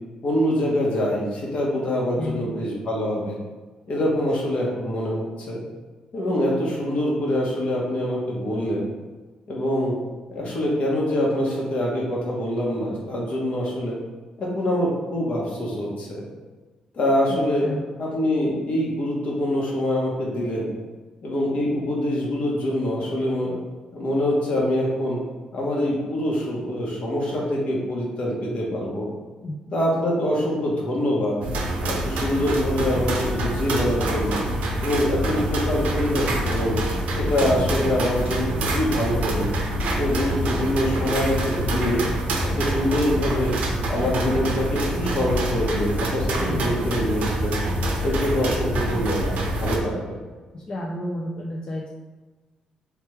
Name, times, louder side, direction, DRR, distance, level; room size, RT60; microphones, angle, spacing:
voice 1, 0.2-3.4 3.9-5.6 6.1-8.9 9.5-9.9 10.3-14.0 14.4-16.2 16.9-17.7 18.0-20.7 21.2-23.6 23.9-25.2 25.5-29.1 29.7-31.4 31.9-34.4 34.8-36.8 37.1-39.5 40.0-42.0 42.4-43.5 43.9-47.6 48.0-50.2, left 1 dB, 60° left, -3 dB, 1.2 m, -24 dB
voice 2, 2.2-2.5 4.1-4.3 17.3-17.8 29.4-29.6 37.5-37.6 46.5-46.8 50.5-51.9, left 1 dB, 40° left, -3 dB, 0.5 m, -32 dB
sound 1, 31.4-49.8, right 1 dB, 80° right, 0.6 m, -26 dB
3.4 x 3.1 x 3.2 m, 1.3 s
cardioid pair, 75°, 2 cm